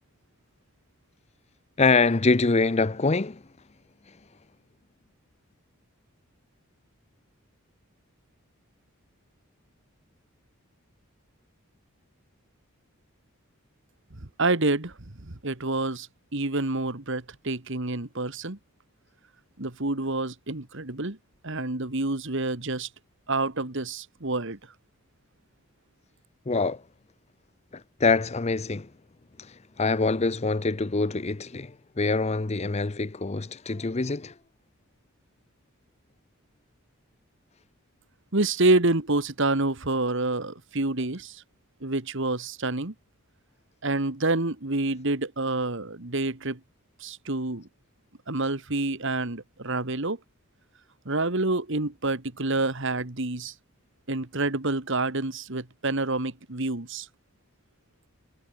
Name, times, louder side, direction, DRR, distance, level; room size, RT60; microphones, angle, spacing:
voice 1, 1.8-3.4 26.5-26.8 27.7-28.9 29.4-34.3, left 3 dB, 30° left, 0.6 m, -25 dB
voice 2, 14.4-18.6 19.6-21.2 21.4-22.9 23.3-24.6 38.3-41.4 41.8-42.9 43.8-46.6 47.0-47.7 48.3-50.2 51.1-53.5 54.1-57.1, right 2 dB, 55° right, 1.9 m, -28 dB
head